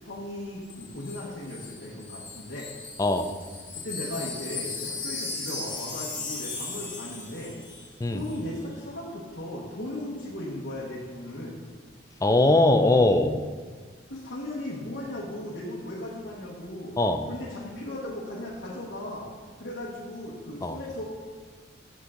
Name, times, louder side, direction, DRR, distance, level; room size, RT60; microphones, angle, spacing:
voice 1, 0.0-2.7 3.7-7.6 8.1-11.6 14.1-17.0 17.3-19.3 19.6-21.0, left 1 dB, 65° left, -6 dB, 1.2 m, -37 dB
Wind chime, 0.7-7.9 8.2-8.4, left 3 dB, 50° left, 2.4 m, -37 dB
voice 2, 12.2-13.3 17.0-17.2 20.6-20.8, left 2 dB, 15° left, 7 dB, 0.4 m, -21 dB
8.3 x 6.1 x 3.7 m, 1.5 s
head